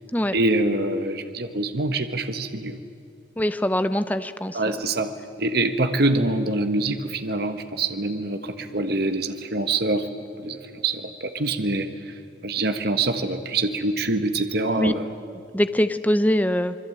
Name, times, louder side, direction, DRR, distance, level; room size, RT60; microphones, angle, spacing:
voice 1, 0.3-2.8 4.5-10.1 10.4-12.1 12.4-15.1, right 2 dB, 60° right, 8 dB, 1.5 m, -25 dB
voice 2, 3.4-4.6 14.7-14.9 15.5-16.8, equal, 10° left, 11 dB, 0.8 m, -22 dB
27.0 x 21.5 x 9.0 m, 2.3 s
head